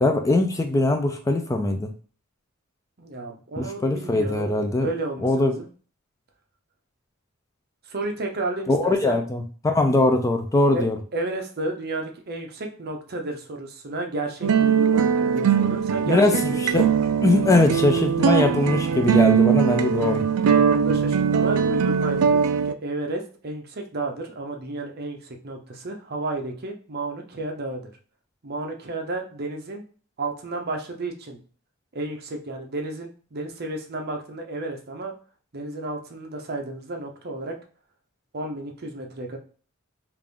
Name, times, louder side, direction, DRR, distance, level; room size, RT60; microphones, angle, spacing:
voice 1, 0.0-1.9 3.6-4.9 5.2-5.6 8.7-11.0 16.0-16.9 17.2-20.3, left 2 dB, 15° left, 0.3 m, -21 dB
voice 2, 3.0-5.7 7.9-9.2 10.7-10.8 11.1-16.2 16.5-16.7 20.5-27.9 28.4-29.8 30.2-31.4 31.9-35.1 35.5-37.5 38.3-39.4, right 2 dB, 50° right, 0.7 m, -32 dB
sound 1, 14.4-22.7, right 7 dB, 85° right, 0.4 m, -21 dB
3.5 x 2.5 x 3.3 m
head